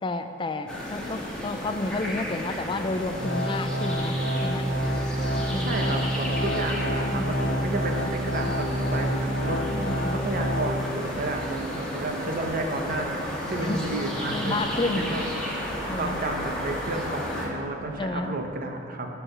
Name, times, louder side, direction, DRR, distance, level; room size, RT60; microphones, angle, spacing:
voice 1, 0.0-4.7 5.4-5.7 7.0-7.3 9.7-10.2 13.5-13.9 14.3-15.1 15.9-16.2 18.0-18.3, left 2 dB, 25° left, 8 dB, 0.4 m, -30 dB
sound 1, 0.7-17.5, equal, 5° left, 1.4 m, -33 dB
Organ, 3.2-11.2 11.6-11.7 12.4-12.5, equal, 70° left, 1.3 m, -28 dB
voice 2, 5.6-9.6 9.9-13.2 13.5-15.2 16.0-19.1, right 2 dB, 50° right, 3 dB, 0.9 m, -32 dB
10.0 x 4.7 x 6.5 m, 2.7 s
head